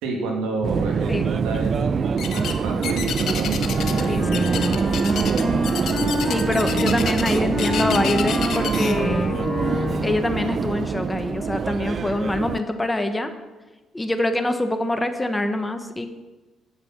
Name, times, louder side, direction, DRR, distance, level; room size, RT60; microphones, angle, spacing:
voice 1, 0.0-5.5, right 3 dB, 90° right, 0 dB, 2.1 m, -30 dB
Subway metro underground, 0.6-12.6, right 6 dB, 45° right, 0.4 m, -25 dB
sound 1, 2.2-2.6 2.8-4.1 4.3-8.9, left 8 dB, 65° left, 0.9 m, -30 dB
Wind instrument woodwind instrument, 3.6-6.8 7.5-10.2, left 1 dB, 35° left, 1.7 m, -27 dB
voice 2, 4.1-4.4 6.3-9.3 10.0-13.3 13.9-16.1, left 1 dB, 15° left, 8 dB, 1.0 m, -25 dB
9.0 x 6.8 x 5.9 m, 1.2 s
cardioid pair, 80°, 0 cm